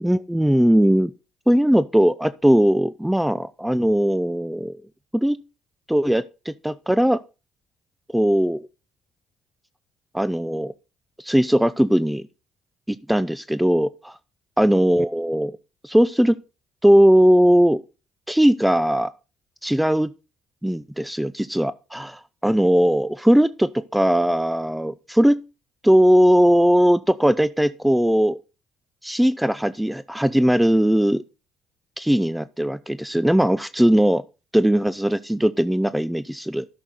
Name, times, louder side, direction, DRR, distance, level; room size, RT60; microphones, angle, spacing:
voice 1, 0.0-1.1 1.5-4.8 5.1-5.4 5.9-7.2 8.1-8.6 10.1-10.7 11.2-12.3 12.9-14.2 14.6-15.5 15.8-16.4 16.8-17.8 18.3-19.1 19.6-20.1 20.6-25.4 25.8-28.4 29.0-31.2 32.0-34.2 34.5-36.7, equal, 5° right, 0.4 m, -19 dB
12.5 x 6.3 x 4.1 m
supercardioid pair, 70°, 0 cm